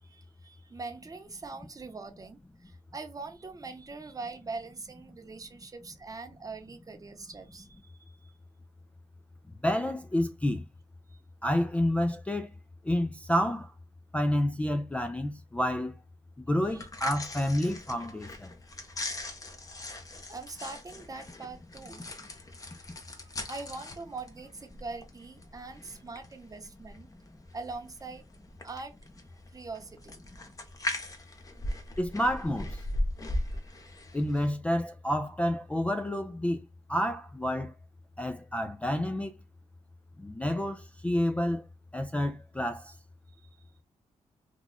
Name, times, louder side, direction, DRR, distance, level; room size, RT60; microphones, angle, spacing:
voice 1, 0.0-8.3 11.1-11.2 16.7-16.9 20.3-22.6 23.1-27.1 27.5-28.2 28.6-28.9 29.5-30.3 33.3-33.7 43.4-43.7, right 3 dB, 30° right, 0.8 m, -43 dB
voice 2, 9.6-10.6 11.4-12.5 12.9-13.7 14.1-15.9 16.4-18.5 32.0-32.8 34.1-36.6 36.9-37.7 38.2-39.3 40.2-41.6 41.9-42.9, equal, 10° left, 0.3 m, -29 dB
sound 1, 16.6-34.5, left 1 dB, 30° left, 0.8 m, -39 dB
3.0 x 2.3 x 3.8 m
cardioid pair, 90°, 12 cm